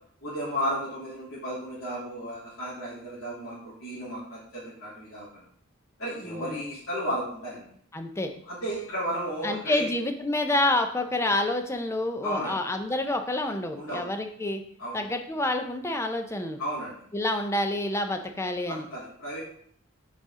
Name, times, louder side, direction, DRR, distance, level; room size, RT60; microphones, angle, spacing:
voice 1, 0.2-5.4 6.0-7.7 8.5-9.9 12.2-12.6 13.7-14.1 14.8-15.0 16.6-17.0 18.7-19.4, equal, 85° left, -10 dB, 3.0 m, -33 dB
voice 2, 6.2-6.6 7.9-8.3 9.4-14.6 14.9-16.6 17.1-18.9, left 1 dB, 15° left, 6 dB, 0.5 m, -28 dB
6.6 x 5.0 x 3.7 m, 0.66 s
head